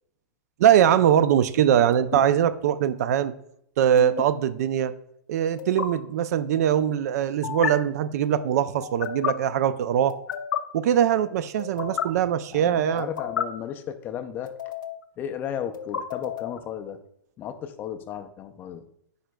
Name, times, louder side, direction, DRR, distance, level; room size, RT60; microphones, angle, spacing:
voice 1, 0.6-3.3 3.8-4.9 5.3-10.2 10.7-13.1, right 9 dB, 55° right, 14 dB, 0.4 m, -22 dB
sound 1, 1.9-2.2 4.0-4.2 5.6-5.9 7.4-7.7 8.8-9.3 10.1-10.6 11.6-12.1 13.0-13.4 14.5-15.0 15.7-16.6, left 9 dB, 85° left, 0.7 m, -31 dB
voice 2, 12.5-14.5 15.2-17.0 17.4-18.8, left 9 dB, 20° left, 8 dB, 0.4 m, -34 dB
9.2 x 5.0 x 2.2 m, 0.75 s
hypercardioid pair, 155°, 10 cm